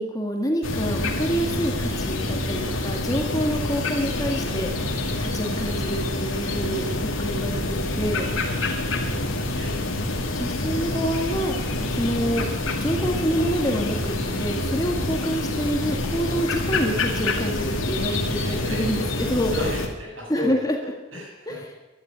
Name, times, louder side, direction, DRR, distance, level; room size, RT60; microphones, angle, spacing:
voice 1, 0.0-4.7 5.2-8.3 10.4-12.5 12.8-19.6 20.3-20.9 21.5-21.7, equal, 20° left, 3 dB, 1.9 m, -27 dB
sound 1, 0.6-19.9, left 2 dB, 85° left, 2.5 m, -27 dB
voice 2, 8.6-9.7 10.1-10.3 18.3-18.9 19.2-20.5 21.1-21.6, left 2 dB, 80° right, -2 dB, 7.5 m, -35 dB
12.0 x 12.0 x 9.3 m, 1.1 s
head